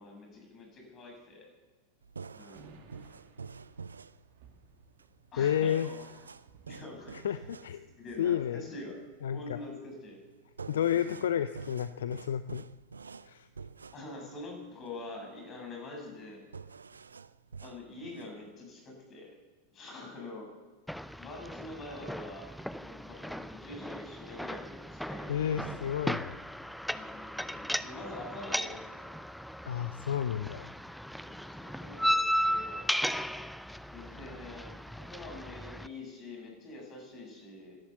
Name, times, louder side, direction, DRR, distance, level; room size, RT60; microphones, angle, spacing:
voice 1, 0.0-1.5 2.3-2.7 5.3-6.3 6.7-7.3 8.0-9.0 9.3-10.2 10.7-11.2 13.9-16.4 17.6-19.3 19.7-20.5 21.2-22.5 22.8-25.3 25.6-25.8 26.9-29.1 31.2-32.8 33.9-37.8, left 2 dB, 30° left, 1 dB, 7.3 m, -45 dB
sound 1, 2.0-18.5, right 5 dB, 75° right, 0.4 m, -49 dB
sound 2, 2.6-9.3, right 5 dB, 50° right, 2.3 m, -60 dB
voice 2, 5.4-5.9 7.2-7.9 8.2-8.7 9.2-9.6 10.7-12.6 13.2-13.5 25.3-26.4 29.6-30.7, left 9 dB, 60° left, 13 dB, 0.5 m, -31 dB
sound 3, 20.9-35.9, equal, ahead, 0.5 m, -36 dB
18.5 x 11.5 x 6.8 m, 1.3 s
figure-of-eight pair, 90°, 0 cm